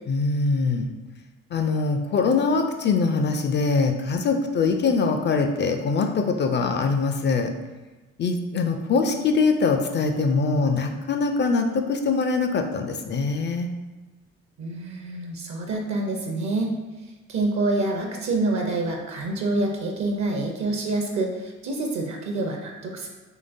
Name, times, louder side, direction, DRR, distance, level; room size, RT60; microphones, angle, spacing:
voice 1, 0.1-0.9 1.5-7.5 8.2-13.7, left 4 dB, 30° left, 5 dB, 0.4 m, -23 dB
voice 2, 14.6-16.7 17.3-23.1, right 2 dB, 50° right, 2 dB, 0.6 m, -27 dB
3.8 x 3.2 x 2.5 m, 1.2 s
figure-of-eight pair, 45°, 37 cm